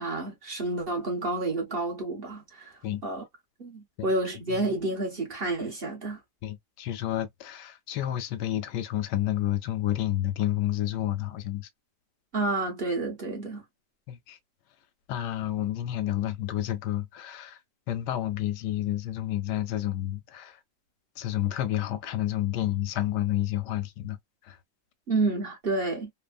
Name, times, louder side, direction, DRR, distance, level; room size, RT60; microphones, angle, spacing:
voice 1, 0.0-3.2 3.6-6.2 12.3-13.6 25.1-26.1, right 2 dB, 45° right, 0.9 m, -30 dB
voice 2, 6.4-11.7 14.1-14.4 15.1-17.6 17.9-20.6 21.2-24.2 24.4-24.6, left 13 dB, 90° left, 1.2 m, -30 dB
3.3 x 2.0 x 2.2 m
omnidirectional pair, 1.8 m